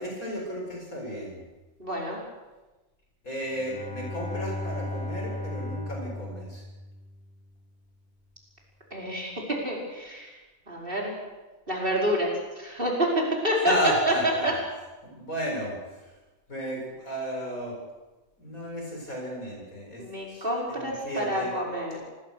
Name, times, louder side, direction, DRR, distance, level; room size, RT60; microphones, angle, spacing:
voice 1, 0.0-1.4 3.2-6.6 13.7-14.5 15.0-15.8 16.5-17.8 18.4-20.0 20.3-21.5, equal, 85° left, 0 dB, 8.2 m, -33 dB
voice 2, 1.8-2.2 8.9-10.3 10.7-11.1 11.7-13.7 14.1-14.2 14.4-14.5 20.0-22.0, equal, 40° right, -3 dB, 5.5 m, -28 dB
Bowed string instrument, 3.5-7.3, left 2 dB, 5° left, 4.3 m, -36 dB
26.5 x 21.0 x 6.6 m, 1.2 s
omnidirectional pair, 1.4 m